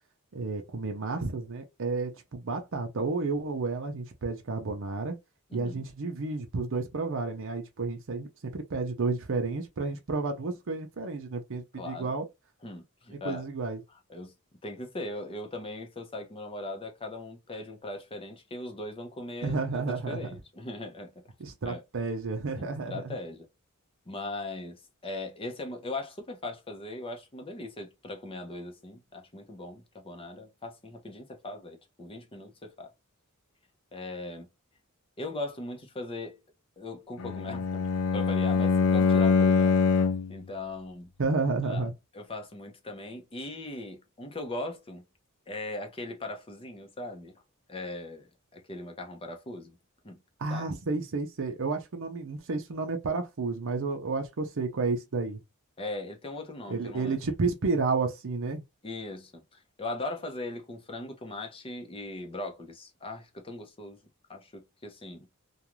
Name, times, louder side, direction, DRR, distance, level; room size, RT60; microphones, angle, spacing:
voice 1, 0.3-5.2 5.5-12.3 13.2-13.8 19.4-20.2 21.4-23.2 41.2-41.9 50.4-55.4 56.7-58.6, right 3 dB, 60° right, 0.6 m, -31 dB
voice 2, 5.5-5.8 11.8-12.1 12.6-13.5 14.1-14.3 14.6-21.1 21.6-21.8 22.6-23.5 24.1-32.9 33.9-34.5 35.2-36.4 36.8-40.0 40.3-41.1 41.7-41.9 42.1-45.0 45.5-47.3 47.7-49.8 50.0-50.2 50.5-50.6 55.8-57.1 58.8-64.0 64.3-65.3, left 2 dB, 25° left, 0.7 m, -39 dB
Bowed string instrument, 37.2-40.4, left 5 dB, 80° left, 0.4 m, -24 dB
2.5 x 2.4 x 3.0 m
head